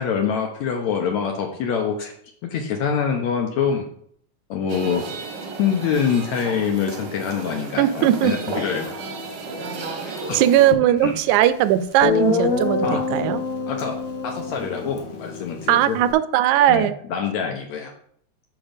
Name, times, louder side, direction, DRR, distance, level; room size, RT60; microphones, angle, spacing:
voice 1, 0.0-2.1 2.4-3.9 4.5-5.1 5.6-9.0 10.3-10.4 11.0-11.1 12.8-13.0 13.7-13.9 14.2-16.0 16.7-17.9, left 7 dB, 75° left, 2 dB, 2.1 m, -25 dB
sound 1, 4.7-10.7, right 3 dB, 55° right, 1.3 m, -33 dB
voice 2, 7.8-8.3 10.3-13.4 15.7-16.9, right 12 dB, 80° right, 14 dB, 2.0 m, -18 dB
Guitar, 11.4-11.5 12.0-16.1, left 4 dB, 55° left, 1.9 m, -25 dB
7.2 x 6.1 x 5.1 m, 0.64 s
omnidirectional pair, 3.5 m